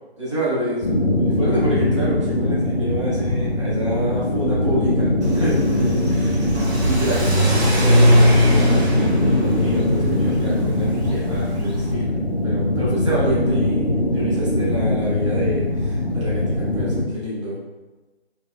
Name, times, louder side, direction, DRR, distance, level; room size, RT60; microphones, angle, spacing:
voice 1, 0.2-6.5 6.8-17.6, right 1 dB, 30° right, -9 dB, 0.7 m, -27 dB
sound 1, 0.8-17.0, left 1 dB, 45° left, 0.4 m, -21 dB
Car / Accelerating revving vroom, 5.2-11.9, equal, 90° right, 0.7 m, -20 dB
2.5 x 2.1 x 2.4 m, 1.2 s
figure-of-eight pair, 155°, 32 cm